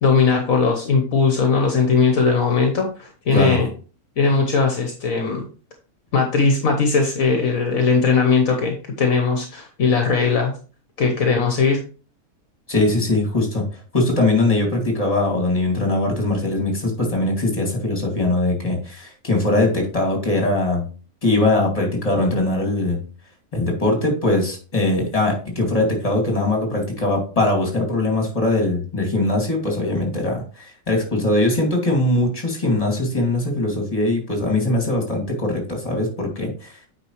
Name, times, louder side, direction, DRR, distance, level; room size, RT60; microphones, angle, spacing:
voice 1, 0.0-3.7 4.2-5.5 6.1-10.5 11.0-11.8, left 4 dB, 65° left, 4 dB, 1.4 m, -19 dB
voice 2, 12.7-13.7 13.9-20.8 21.2-23.0 23.5-36.8, left 2 dB, 25° left, 1 dB, 2.4 m, -21 dB
8.7 x 5.3 x 3.1 m, 0.37 s
omnidirectional pair, 1.6 m